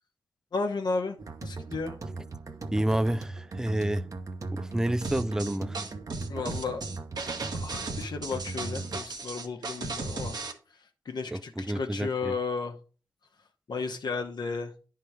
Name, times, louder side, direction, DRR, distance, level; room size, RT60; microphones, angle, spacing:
voice 1, 0.5-1.2 1.4-2.0 6.3-6.8 7.5-10.4 11.1-12.8 13.7-14.7, left 4 dB, 75° left, 0.9 m, -33 dB
sound 1, 1.2-9.0, right 3 dB, 50° right, 0.8 m, -38 dB
voice 2, 2.7-4.0 4.5-5.8 11.3-12.3, right 1 dB, 10° right, 0.3 m, -29 dB
sound 2, 5.0-10.5, right 3 dB, 70° right, 1.1 m, -36 dB
10.5 x 3.8 x 4.8 m
wide cardioid pair, 100°, 7 cm